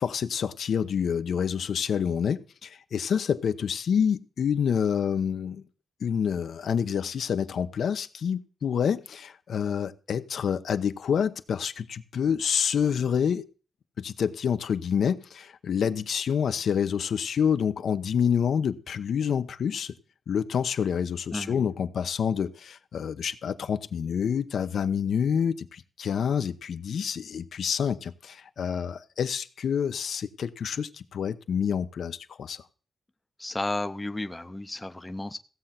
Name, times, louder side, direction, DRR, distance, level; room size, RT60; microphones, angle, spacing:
voice 1, 0.0-5.6 6.0-13.5 14.0-20.0 20.3-32.6, left 7 dB, 70° left, 0.9 m, -27 dB
voice 2, 21.3-21.7 33.4-35.4, left 2 dB, 10° left, 0.7 m, -33 dB
16.0 x 7.9 x 5.8 m
wide cardioid pair, 180°, 0 cm